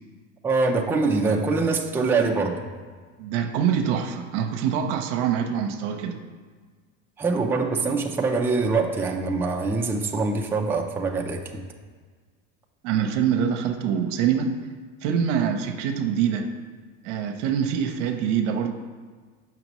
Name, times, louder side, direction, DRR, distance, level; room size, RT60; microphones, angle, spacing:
voice 1, 0.4-2.6 7.2-11.4, right 3 dB, 5° right, 1 dB, 0.4 m, -24 dB
voice 2, 3.2-6.2 12.8-14.5 15.0-16.5 17.0-18.7, right 8 dB, 75° right, 5 dB, 0.8 m, -24 dB
7.7 x 6.0 x 3.0 m, 1.5 s
supercardioid pair, 120°, 37 cm